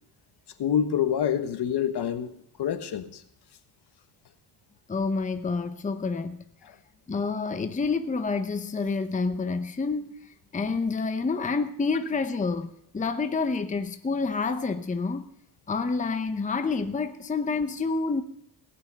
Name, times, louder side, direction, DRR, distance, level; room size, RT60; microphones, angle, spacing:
voice 1, 0.6-3.2, left 9 dB, 60° left, 1.3 m, -27 dB
voice 2, 4.9-6.4 7.1-10.1 10.5-15.3 15.7-18.2, left 4 dB, 15° left, 0.8 m, -28 dB
18.0 x 6.2 x 8.2 m
cardioid pair, 120°, 44 cm